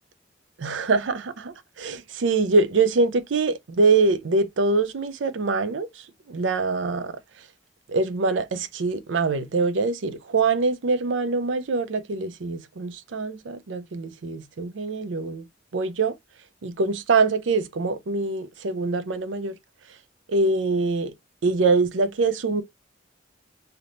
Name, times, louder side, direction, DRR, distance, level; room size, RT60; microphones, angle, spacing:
voice 1, 0.6-5.9 6.3-7.1 7.9-15.4 15.7-16.1 16.6-19.6 20.3-21.1 21.4-22.6, right 3 dB, 80° right, 0.5 m, -24 dB
3.4 x 2.7 x 2.5 m
head